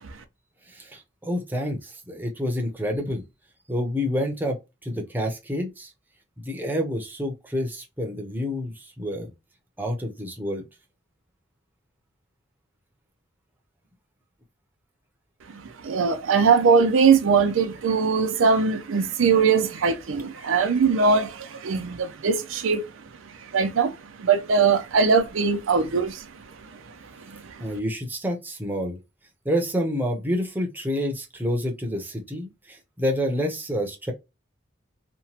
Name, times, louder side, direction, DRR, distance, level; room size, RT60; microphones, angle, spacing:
voice 1, 0.7-3.2 3.7-4.6 4.8-5.9 6.4-9.3 9.8-10.6 27.6-29.0 29.4-34.1, equal, 10° right, 0.6 m, -28 dB
voice 2, 15.5-22.8 23.5-26.3 27.3-27.5, right 5 dB, 85° right, 0.5 m, -21 dB
2.9 x 2.2 x 2.7 m
head